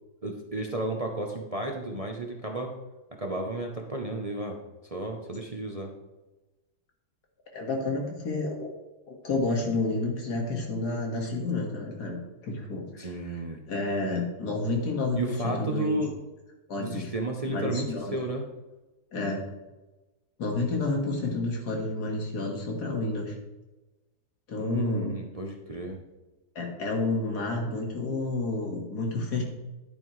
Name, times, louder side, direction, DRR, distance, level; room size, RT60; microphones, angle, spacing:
voice 1, 0.2-2.7 3.2-4.6 4.8-5.9 13.0-13.6 15.1-16.1 16.8-18.5 24.6-26.0, right 2 dB, 40° right, 2 dB, 0.5 m, -33 dB
voice 2, 7.5-8.7 9.1-12.2 12.4-13.4 13.7-16.0 16.7-17.1 17.5-18.2 19.1-19.4 20.4-23.3 24.5-25.2 26.6-29.4, left 2 dB, 65° left, 1 dB, 2.3 m, -30 dB
10.5 x 9.0 x 3.2 m, 1.1 s
omnidirectional pair, 1.9 m